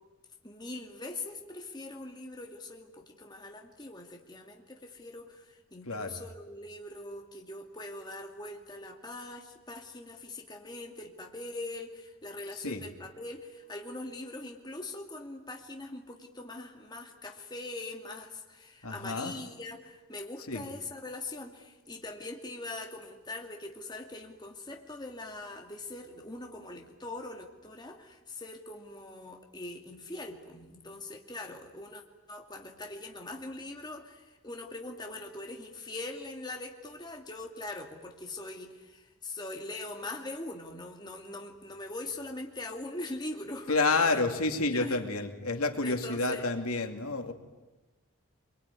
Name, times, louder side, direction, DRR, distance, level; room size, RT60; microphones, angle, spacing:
voice 1, 0.4-32.0 32.3-44.2 44.6-45.3 45.8-46.5, left 2 dB, 20° left, 2 dB, 2.4 m, -42 dB
voice 2, 18.8-19.3 20.5-20.6 43.7-47.3, left 3 dB, 90° left, 5 dB, 2.5 m, -29 dB
25.0 x 23.5 x 9.8 m, 1.1 s
head